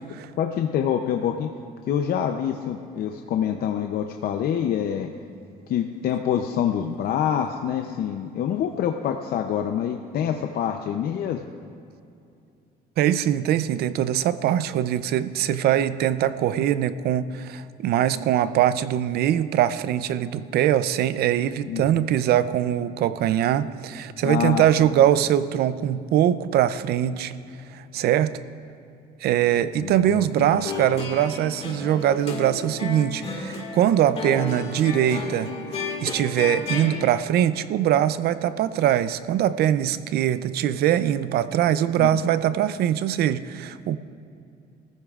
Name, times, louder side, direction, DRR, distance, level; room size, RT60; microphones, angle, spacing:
voice 1, 0.4-1.5 1.9-5.1 5.7-11.5 21.7-22.1 24.2-24.7 29.8-30.6 42.0-42.1, left 9 dB, 65° left, 5 dB, 0.6 m, -26 dB
voice 2, 13.0-27.3 27.7-28.3 29.2-35.5 36.0-44.0, right 11 dB, 70° right, 14 dB, 0.5 m, -22 dB
sound 1, 30.4-37.1, left 4 dB, 35° left, 2.2 m, -33 dB
23.5 x 14.5 x 2.5 m, 2.5 s
cardioid pair, 110°, 17 cm